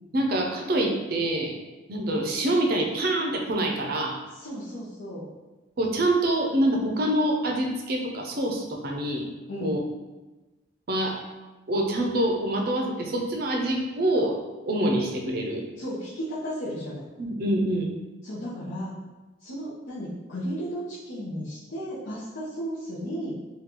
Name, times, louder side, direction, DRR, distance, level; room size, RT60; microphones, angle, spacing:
voice 1, 0.1-1.5 1.9-4.2 5.8-9.3 9.6-9.8 10.9-11.2 11.7-14.3 14.7-15.6 17.2-17.9, right 1 dB, 50° right, 1 dB, 0.5 m, -25 dB
voice 2, 4.4-5.3 9.5-9.8 15.8-17.0 18.2-18.9 19.4-23.3, equal, 70° left, -10 dB, 0.7 m, -34 dB
3.7 x 2.3 x 2.9 m, 1.1 s
head